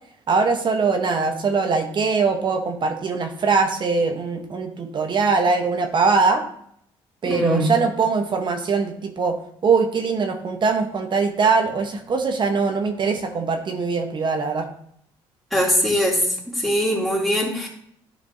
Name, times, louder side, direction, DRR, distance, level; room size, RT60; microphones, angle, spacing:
voice 1, 0.3-6.4 7.2-9.4 9.6-14.7, right 4 dB, 45° right, 4 dB, 1.0 m, -22 dB
voice 2, 7.3-7.7 15.5-17.7, equal, ahead, -4 dB, 2.6 m, -22 dB
10.5 x 5.1 x 2.7 m, 0.68 s
supercardioid pair, 75°, 11 cm